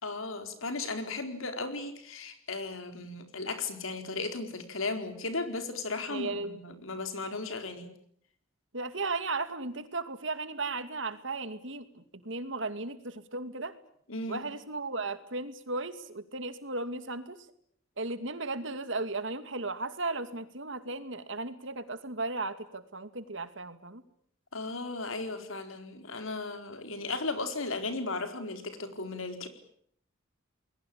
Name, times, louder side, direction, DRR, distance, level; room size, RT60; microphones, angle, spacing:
voice 1, 0.0-7.9 14.1-14.4 24.5-29.5, left 3 dB, 85° left, 7 dB, 4.4 m, -36 dB
voice 2, 6.1-6.9 8.7-13.7 14.3-17.5 18.0-24.0, right 3 dB, 70° right, 10 dB, 2.4 m, -36 dB
29.5 x 21.5 x 8.7 m, 0.67 s
head